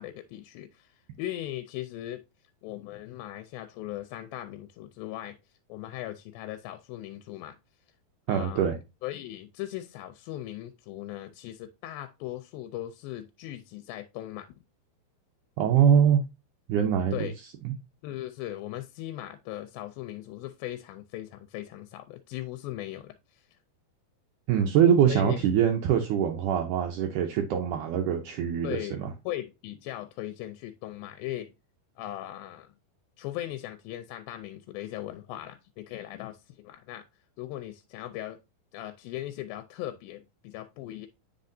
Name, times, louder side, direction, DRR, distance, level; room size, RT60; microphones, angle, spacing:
voice 1, 0.0-2.2 2.6-5.4 5.7-7.6 8.3-14.5 17.1-17.4 18.0-23.5 25.1-25.4 28.6-31.5 32.0-32.7 33.2-37.0 37.4-38.4 38.7-41.1, left 14 dB, 80° left, 2.2 m, -38 dB
voice 2, 8.3-8.8 15.6-16.2 16.7-17.3 17.6-17.7 24.5-29.1, right 8 dB, 80° right, 1.8 m, -23 dB
9.5 x 4.2 x 2.6 m
omnidirectional pair, 4.4 m